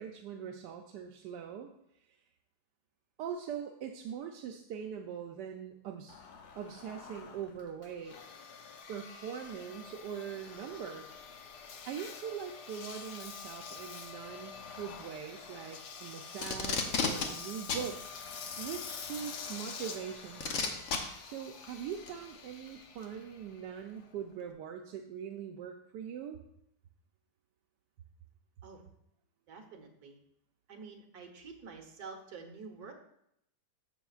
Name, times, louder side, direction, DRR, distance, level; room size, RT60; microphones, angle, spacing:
voice 1, 0.0-1.7 3.2-6.2 6.5-8.2 8.9-11.2 11.9-18.0 18.6-20.9 21.2-26.4, right 8 dB, 85° right, 3 dB, 1.3 m, -42 dB
Engine, 6.1-24.5, left 5 dB, 75° left, 1.4 m, -47 dB
Packing tape duct tape, 16.4-17.3 17.7-17.9 19.2-19.3 20.4-21.0 22.1-22.2, left 5 dB, 55° left, 1.3 m, -31 dB
voice 2, 29.5-30.2 30.7-32.9, right 5 dB, 70° right, 3 dB, 1.7 m, -48 dB
14.0 x 6.1 x 2.4 m, 0.76 s
omnidirectional pair, 1.8 m